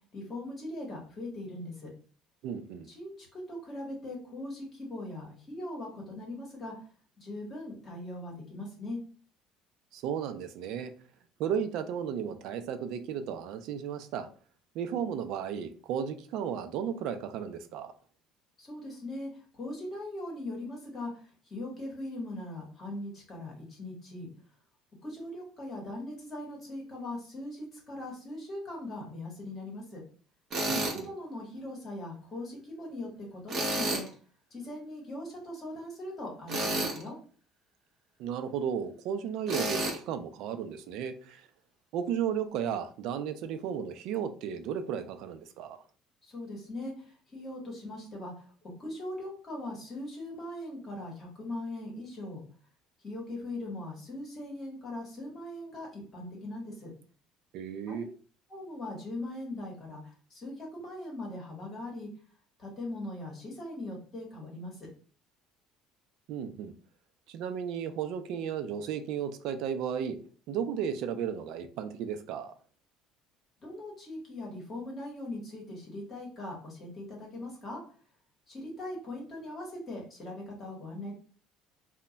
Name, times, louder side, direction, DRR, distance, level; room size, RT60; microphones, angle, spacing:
voice 1, 0.1-1.9 2.9-6.9 7.2-9.0 18.6-24.3 25.0-30.0 30.9-34.0 34.5-37.2 46.2-52.4 53.0-56.9 57.9-58.1 58.5-62.1 62.6-64.9 73.6-77.8 78.5-81.1, left 1 dB, 25° left, 1.0 m, -40 dB
voice 2, 2.4-2.9 9.9-10.9 11.4-14.3 14.7-17.9 30.7-31.1 38.2-41.5 41.9-45.8 57.5-58.1 66.3-66.7 67.3-70.2 70.5-72.5, right 8 dB, 60° right, 0.3 m, -34 dB
Tools, 30.5-31.0 33.5-34.1 36.5-37.0 39.5-40.0, right 1 dB, 35° right, 0.7 m, -30 dB
2.2 x 2.1 x 3.8 m
cardioid pair, 160°, 0 cm